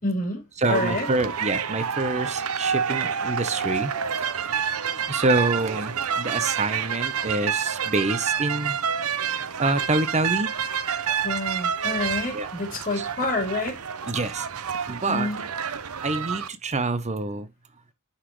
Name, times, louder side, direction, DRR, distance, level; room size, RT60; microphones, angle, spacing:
voice 1, 0.0-0.4 0.7-1.1 11.2-13.8 15.1-15.4, left 2 dB, 35° left, 3.8 m, -28 dB
voice 2, 0.6-3.9 5.1-8.8 9.6-10.5 12.3-12.5 12.9-13.1 14.1-14.5 14.9-15.3 16.0-17.5, right 2 dB, 30° right, 0.9 m, -26 dB
sound 1, 0.6-16.5, right 7 dB, 75° right, 0.8 m, -28 dB
10.0 x 5.6 x 3.2 m
head